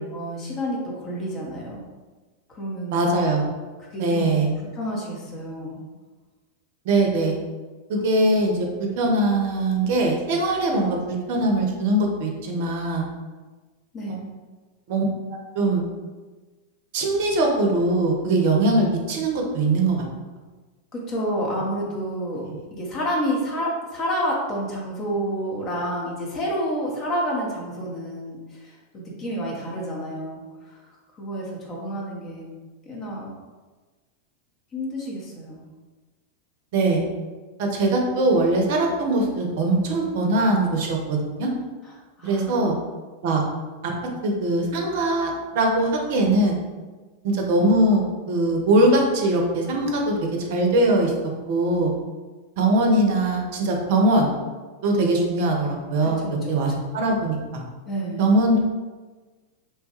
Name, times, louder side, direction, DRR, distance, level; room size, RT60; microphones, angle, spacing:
voice 1, 0.1-1.8 2.5-3.1 3.9-4.3 4.6-5.8 13.9-14.3 20.9-30.7 31.2-32.5 32.9-33.3 34.7-35.6 42.2-42.5 56.0-56.6 57.9-58.2, equal, 30° left, -2 dB, 0.6 m, -29 dB
voice 2, 2.9-3.4 4.0-4.5 6.9-7.4 7.9-13.1 14.1-14.2 14.9-15.0 15.3-15.8 16.9-20.0 36.7-37.0 37.6-41.5 42.2-42.8 43.2-43.4 43.8-43.9 44.2-46.6 47.2-51.1 51.5-51.9 52.6-54.3 54.8-57.6 58.2-58.6, right 2 dB, 50° right, 1 dB, 0.5 m, -21 dB
3.2 x 2.2 x 2.9 m, 1.3 s
figure-of-eight pair, 90°, 0 cm